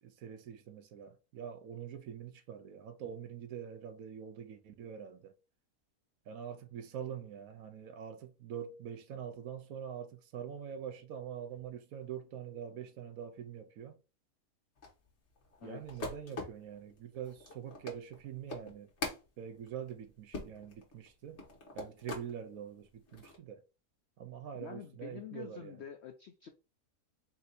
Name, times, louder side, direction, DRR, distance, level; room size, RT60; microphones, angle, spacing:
voice 1, 0.0-5.3 6.3-14.0 15.6-18.9 19.4-21.4 21.7-23.6 24.2-25.8, right 8 dB, 70° right, 1.0 m, -44 dB
sound 1, 14.8-22.3 22.8-23.4, left 2 dB, 50° left, 1.4 m, -44 dB
voice 2, 15.6-16.0 24.5-26.5, left 9 dB, 75° left, 0.6 m, -47 dB
4.2 x 2.6 x 4.0 m
omnidirectional pair, 1.7 m